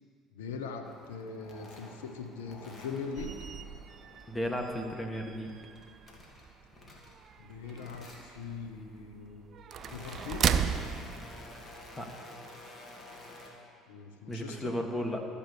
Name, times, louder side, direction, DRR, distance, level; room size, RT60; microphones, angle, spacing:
voice 1, 0.3-3.4 7.4-9.5 9.9-10.6 13.9-14.8, left 5 dB, 85° left, 6 dB, 0.8 m, -41 dB
sound 1, 0.8-4.9 5.3-7.4 7.7-8.5 9.2-13.5, left 1 dB, 35° left, 2.2 m, -51 dB
sound 2, 3.2-12.1, right 7 dB, 50° right, 0.5 m, -36 dB
voice 2, 4.3-5.5 11.9-12.1 14.3-15.3, equal, 15° left, 3 dB, 1.5 m, -34 dB
13.5 x 5.3 x 6.7 m, 2.3 s
hypercardioid pair, 70°, 0 cm